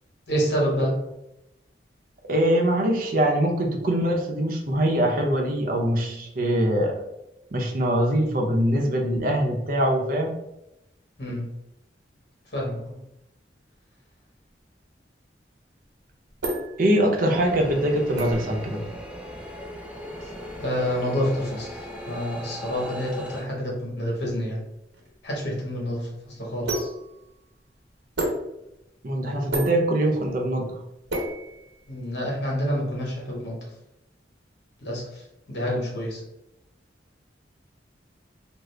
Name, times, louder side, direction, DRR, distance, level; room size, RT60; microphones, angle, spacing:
voice 1, 0.3-0.9 11.2-11.5 12.5-12.8 20.6-24.6 25.2-26.1 26.4-26.9 31.9-33.6 34.8-35.1 35.5-36.2, equal, 65° left, -2 dB, 1.2 m, -27 dB
voice 2, 2.3-6.9 7.5-10.3 16.8-18.8 29.0-30.8, right 1 dB, 50° right, 1 dB, 0.6 m, -23 dB
sound 1, 15.8-32.2, right 1 dB, 85° right, 0.9 m, -35 dB
sound 2, 17.3-23.4, equal, 5° right, 0.3 m, -38 dB
3.7 x 2.0 x 3.2 m, 0.88 s
head